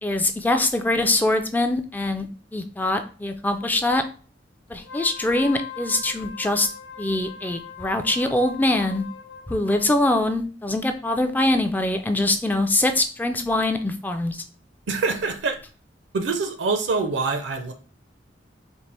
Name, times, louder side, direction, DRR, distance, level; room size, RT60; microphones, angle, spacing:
voice 1, 0.0-2.3 2.5-4.0 4.7-6.7 7.0-9.0 9.5-14.4, left 2 dB, 10° left, 6 dB, 0.3 m, -23 dB
Wind instrument woodwind instrument, 4.8-10.0, left 7 dB, 80° left, 0.5 m, -40 dB
voice 2, 14.9-15.6 16.1-17.7, right 4 dB, 70° right, 7 dB, 0.5 m, -25 dB
4.2 x 2.4 x 3.3 m, 0.38 s
head